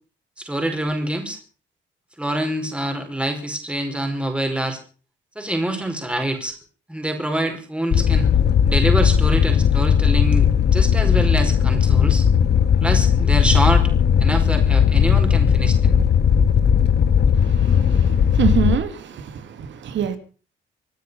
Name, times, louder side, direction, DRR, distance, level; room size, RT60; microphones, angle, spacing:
voice 1, 0.4-1.4 2.2-4.8 5.3-6.6 6.9-8.3 8.6-12.3 12.8-13.9 14.2-16.0, right 1 dB, 5° right, 4.9 m, -25 dB
Fire, 7.9-18.7, left 7 dB, 60° left, 2.0 m, -17 dB
voice 2, 17.3-20.2, right 8 dB, 70° right, 2.8 m, -26 dB
27.0 x 9.4 x 5.6 m
cardioid pair, 90°, 20 cm